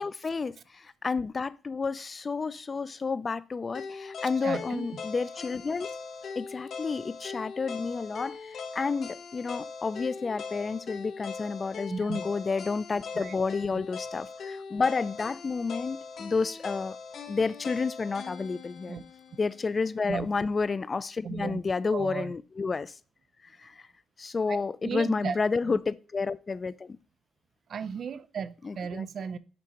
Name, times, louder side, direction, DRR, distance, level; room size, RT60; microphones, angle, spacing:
voice 1, 0.0-5.9 6.4-17.0 17.3-19.0 19.4-22.9 23.6-23.7 24.2-27.0 28.6-29.0, left 4 dB, 35° left, 0.3 m, -30 dB
sound 1, 3.7-19.8, left 5 dB, 60° left, 1.3 m, -41 dB
voice 2, 4.4-4.9 11.9-12.2 13.1-13.4 18.9-19.0 20.1-20.3 21.2-21.6 21.9-22.3 24.5-25.4 25.6-25.8 27.7-29.4, right 6 dB, 55° right, 0.5 m, -35 dB
10.5 x 3.6 x 2.9 m
cardioid pair, 90°, 0 cm